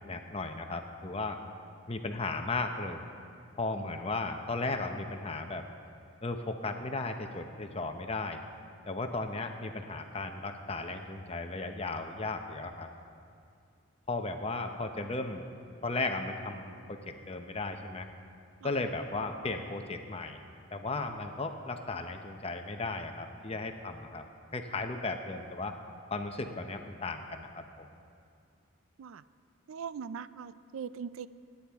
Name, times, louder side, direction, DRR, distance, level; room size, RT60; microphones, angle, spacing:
voice 1, 0.0-1.4 1.9-3.0 3.6-5.6 6.2-8.4 8.9-12.9 14.1-15.5 15.8-17.0 17.3-18.1 18.6-20.4 20.7-24.2 24.5-25.8 26.1-27.9, left 3 dB, 30° left, 6 dB, 0.7 m, -35 dB
voice 2, 29.7-31.3, right 7 dB, 75° right, 15 dB, 0.4 m, -40 dB
23.0 x 10.0 x 3.5 m, 2.4 s
head